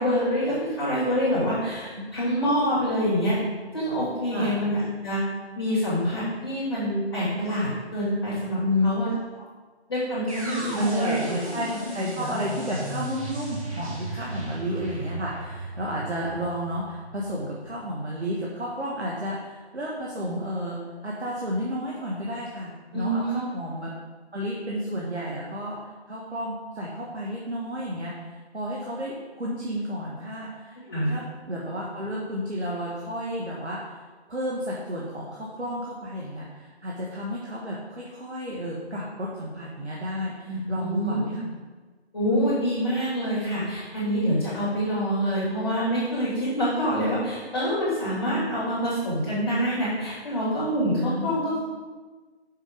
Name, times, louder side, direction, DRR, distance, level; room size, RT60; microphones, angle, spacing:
voice 1, 0.0-3.4 3.7-5.2 5.5-9.1 9.9-11.2 12.2-12.3 14.1-14.3 22.9-23.4 30.8-31.2 40.4-41.4 42.1-51.5, equal, 20° left, -10 dB, 2.6 m, -26 dB
sound 1, 10.3-18.2, right 1 dB, 30° right, 1.6 m, -36 dB
voice 2, 10.7-11.7 11.9-23.9 24.3-25.8 26.1-30.8 31.1-31.2 31.5-33.8 34.3-41.4 51.0-51.6, equal, 75° right, -4 dB, 1.8 m, -31 dB
6.5 x 5.6 x 5.2 m, 1.4 s
figure-of-eight pair, 170°, 34 cm